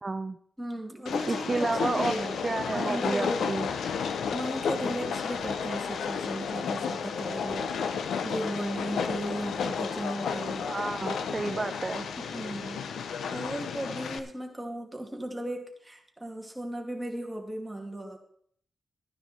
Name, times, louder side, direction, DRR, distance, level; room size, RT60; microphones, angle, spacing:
voice 1, 0.0-0.4 1.3-3.7 10.7-12.1, right 3 dB, 30° right, 9 dB, 0.5 m, -31 dB
voice 2, 0.6-2.4 2.7-3.5 4.3-7.8 8.2-10.7 12.2-12.9 13.3-18.2, right 1 dB, 10° right, 1 dB, 2.7 m, -36 dB
Train, 1.1-14.2, left 6 dB, 90° left, 0.9 m, -32 dB
13.0 x 9.7 x 4.5 m, 0.63 s
cardioid pair, 90°, 0 cm